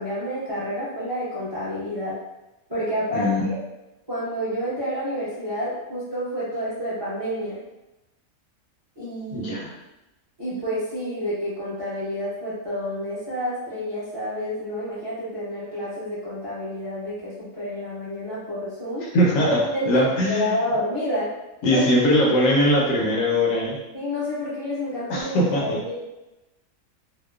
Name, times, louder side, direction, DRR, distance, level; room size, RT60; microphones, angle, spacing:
voice 1, 0.0-2.1 2.7-3.6 4.1-7.6 9.0-9.5 10.4-19.1 19.4-21.3 21.7-21.8 23.9-25.9, equal, 25° right, -10 dB, 0.6 m, -29 dB
voice 2, 3.1-3.5 9.3-9.7 19.1-19.6 19.9-20.5 21.6-23.8 25.1-25.8, equal, 75° left, -3 dB, 1.0 m, -21 dB
2.8 x 2.0 x 2.3 m, 0.98 s
omnidirectional pair, 1.5 m